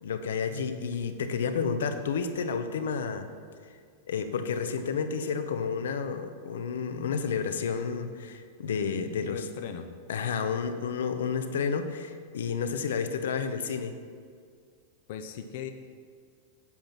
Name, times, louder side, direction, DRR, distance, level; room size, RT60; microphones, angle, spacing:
voice 1, 0.0-3.3 4.1-9.4 10.1-13.9, left 6 dB, 90° left, 9 dB, 0.8 m, -31 dB
voice 2, 9.2-9.9 15.1-15.7, left 8 dB, 60° left, 7 dB, 0.8 m, -38 dB
8.7 x 8.2 x 6.0 m, 2.1 s
supercardioid pair, 150°, 0 cm